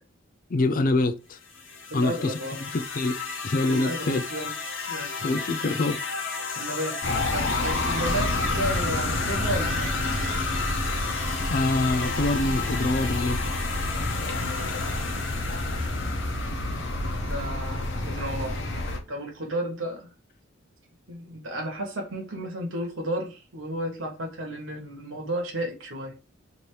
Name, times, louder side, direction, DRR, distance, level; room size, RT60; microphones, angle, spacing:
voice 1, 0.5-1.4 1.9-3.2 3.4-4.2 5.2-6.0 11.5-13.4, left 2 dB, 45° left, 0.4 m, -25 dB
sound 1, 1.4-16.5, left 4 dB, 80° left, 1.1 m, -34 dB
voice 2, 1.9-2.6 3.7-4.5 4.9-5.1 6.6-7.0 7.3-10.2 17.2-18.6 19.1-20.1 21.1-26.2, right 1 dB, 80° right, 1.2 m, -33 dB
sound 2, 7.0-19.0, left 2 dB, 60° left, 0.9 m, -28 dB
3.3 x 2.8 x 4.5 m
head